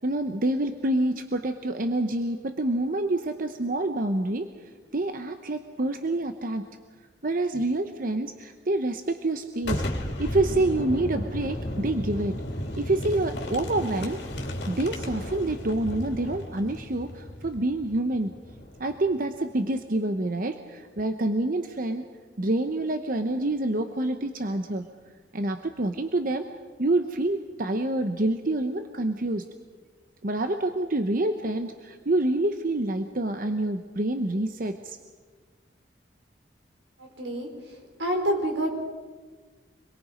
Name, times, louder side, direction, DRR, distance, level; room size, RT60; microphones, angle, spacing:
voice 1, 0.0-4.5 4.9-6.7 7.2-12.4 12.8-18.3 18.8-22.1 22.4-24.9 25.3-26.4 26.8-29.5 30.2-35.0, right 2 dB, 50° right, 7 dB, 0.9 m, -27 dB
Boom, 9.6-19.2, left 1 dB, 70° left, 2.9 m, -34 dB
voice 2, 37.2-37.5 38.0-38.7, equal, 85° right, 2 dB, 4.6 m, -26 dB
26.0 x 22.0 x 5.1 m, 1.4 s
head